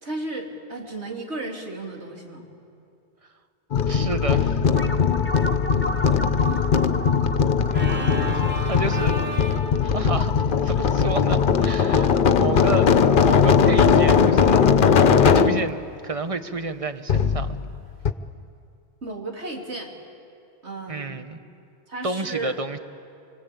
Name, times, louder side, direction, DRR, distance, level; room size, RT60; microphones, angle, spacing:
voice 1, 0.0-2.4 6.3-6.7 11.9-12.1 19.0-19.9 20.6-21.2 21.9-22.6, right 2 dB, 80° right, 0 dB, 3.4 m, -34 dB
sound 1, 3.7-15.7 17.1-17.8 18.1-18.2, left 6 dB, 55° left, 0.9 m, -19 dB
voice 2, 3.9-4.7 8.3-9.2 9.8-10.3 10.6-14.6 15.2-17.6 20.9-21.4 22.0-22.8, right 3 dB, 30° right, 9 dB, 1.2 m, -30 dB
sound 2, 4.8-9.6, equal, 10° left, 0.9 m, -34 dB
Organ, 7.7-12.5, right 1 dB, 10° right, 3.4 m, -35 dB
27.0 x 24.5 x 8.5 m, 2.5 s
omnidirectional pair, 1.1 m